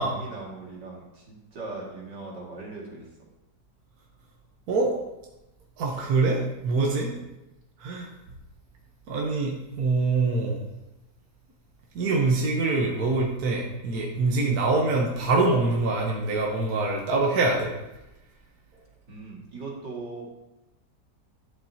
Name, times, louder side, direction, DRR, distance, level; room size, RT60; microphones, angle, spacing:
voice 1, 0.0-3.0 7.1-7.2 19.1-20.3, right 3 dB, 80° right, -4 dB, 2.9 m, -39 dB
voice 2, 5.8-7.1 7.8-8.1 9.1-10.6 11.9-17.7, right 3 dB, 65° right, -1 dB, 1.4 m, -24 dB
11.5 x 7.6 x 2.8 m, 0.96 s
omnidirectional pair, 1.8 m